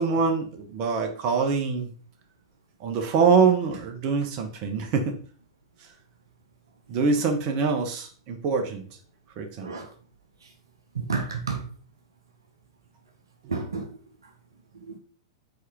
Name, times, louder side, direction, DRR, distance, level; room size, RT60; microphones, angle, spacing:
voice 1, 0.0-1.9 2.8-5.2 6.9-8.9 9.4-9.7, right 5 dB, 45° right, 1.3 m, -24 dB
voice 2, 9.6-9.9 10.9-11.7 13.5-14.0 14.7-15.0, right 4 dB, 80° right, 0.9 m, -31 dB
5.0 x 4.2 x 4.7 m
figure-of-eight pair, 100°, 2 cm